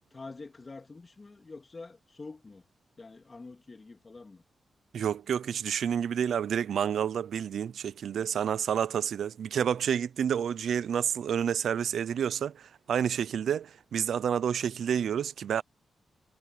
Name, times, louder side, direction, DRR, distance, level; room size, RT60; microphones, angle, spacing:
voice 1, 0.1-2.6 3.0-4.4, left 3 dB, 30° left, 2.5 m, -46 dB
voice 2, 4.9-15.6, right 8 dB, 80° right, 0.6 m, -29 dB
wide cardioid pair, 115°, 0 cm